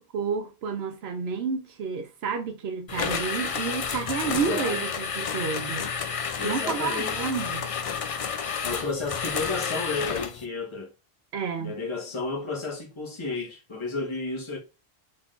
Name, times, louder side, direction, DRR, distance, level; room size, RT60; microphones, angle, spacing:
voice 1, 0.1-5.9 6.4-7.7 11.3-11.7, right 6 dB, 85° right, 0.9 m, -30 dB
sound 1, 2.9-10.4, left 6 dB, 50° left, 0.4 m, -30 dB
voice 2, 4.2-4.8 6.4-7.2 8.6-10.9 11.6-14.6, left 3 dB, 30° left, 1.2 m, -32 dB
3.9 x 3.5 x 2.5 m
omnidirectional pair, 1.0 m